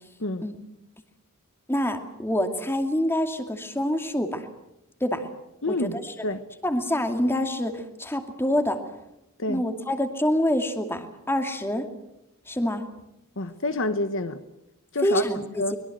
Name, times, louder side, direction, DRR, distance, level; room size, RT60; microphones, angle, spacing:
voice 1, 1.7-4.5 5.0-5.2 5.7-6.0 6.6-8.8 9.5-11.9 12.5-12.9 15.0-15.8, equal, 10° left, 6 dB, 2.5 m, -26 dB
voice 2, 5.6-6.4 9.4-9.6 13.4-14.4 14.9-15.2 15.6-15.8, left 2 dB, 60° left, 10 dB, 1.2 m, -28 dB
24.0 x 22.0 x 8.0 m, 0.86 s
head